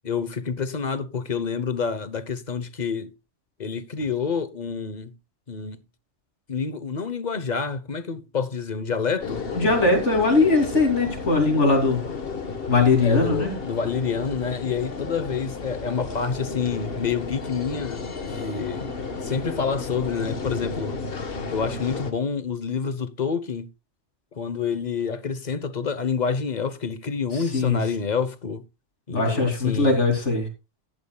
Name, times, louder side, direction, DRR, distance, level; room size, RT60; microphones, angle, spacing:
voice 1, 0.0-3.1 3.6-5.1 5.5-5.8 6.5-9.4 13.0-18.9 19.2-21.0 21.5-23.7 24.3-28.6 29.1-30.0, left 5 dB, 40° left, 1.1 m, -28 dB
sound 1, 9.2-22.1, left 4 dB, 55° left, 1.6 m, -33 dB
voice 2, 9.5-12.0 12.7-13.5 27.5-27.8 29.1-30.5, left 3 dB, 85° left, 3.4 m, -20 dB
14.0 x 11.0 x 2.3 m
omnidirectional pair, 1.2 m